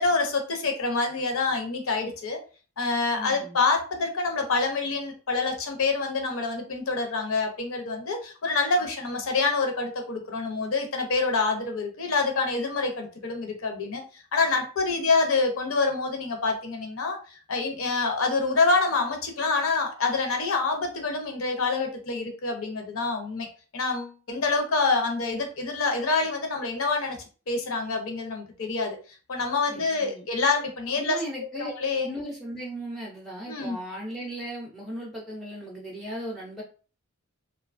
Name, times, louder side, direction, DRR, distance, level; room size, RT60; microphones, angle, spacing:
voice 1, 0.0-2.4 2.8-14.0 14.3-23.5 23.7-27.2 27.5-29.0 29.3-32.1 33.5-33.8, left 3 dB, 65° left, 4 dB, 0.6 m, -26 dB
voice 2, 3.1-3.6 29.7-30.3 31.0-31.7 32.0-36.6, right 1 dB, ahead, -4 dB, 0.4 m, -37 dB
2.7 x 2.2 x 2.4 m, 0.37 s
head